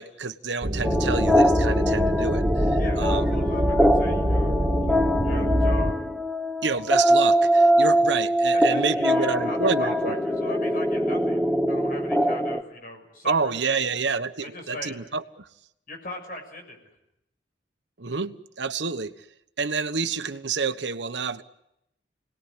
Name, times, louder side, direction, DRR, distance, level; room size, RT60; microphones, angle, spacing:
voice 1, 0.0-3.2 6.6-10.2 13.2-15.5 18.0-19.1 19.6-21.4, right 4 dB, 90° right, 10 dB, 1.2 m, -28 dB
sound 1, 0.6-5.9, equal, 40° right, 2.0 m, -25 dB
sound 2, 0.8-12.6, equal, ahead, 1.0 m, -22 dB
voice 2, 2.8-5.9 8.5-14.0 14.4-15.0 15.9-16.8, left 1 dB, 50° left, 3 dB, 6.6 m, -40 dB
29.0 x 19.5 x 10.0 m, 0.85 s
head